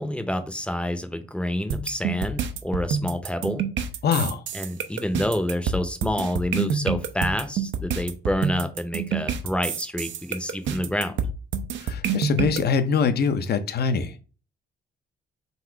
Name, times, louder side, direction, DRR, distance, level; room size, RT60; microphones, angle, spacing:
voice 1, 0.0-3.7 4.5-11.1, equal, 5° left, 9 dB, 0.7 m, -28 dB
sound 1, 1.7-12.6, right 6 dB, 70° right, 0.6 m, -28 dB
voice 2, 4.0-4.4 11.8-14.2, left 5 dB, 55° left, 10 dB, 0.6 m, -23 dB
4.1 x 2.5 x 4.4 m, 0.36 s
cardioid pair, 90°, 20 cm